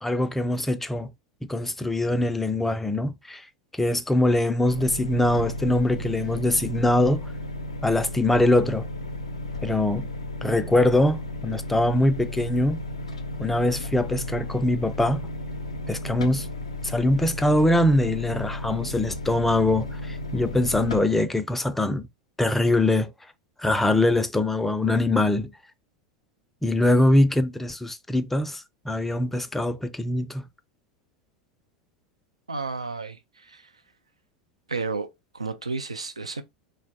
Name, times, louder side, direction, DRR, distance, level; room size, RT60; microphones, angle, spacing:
voice 1, 0.0-1.1 1.5-3.5 3.8-7.3 7.8-8.9 9.6-10.1 10.4-12.8 13.4-15.2 15.9-16.5 16.8-22.1 22.4-23.1 23.6-25.5 26.6-30.5, left 1 dB, 5° left, 0.3 m, -23 dB
sound 1, 4.6-21.0, left 2 dB, 80° left, 0.4 m, -34 dB
voice 2, 32.5-33.2 33.5-33.6 34.7-35.1 35.3-36.4, right 4 dB, 85° right, 0.3 m, -31 dB
3.1 x 2.1 x 2.6 m
figure-of-eight pair, 80°, 3 cm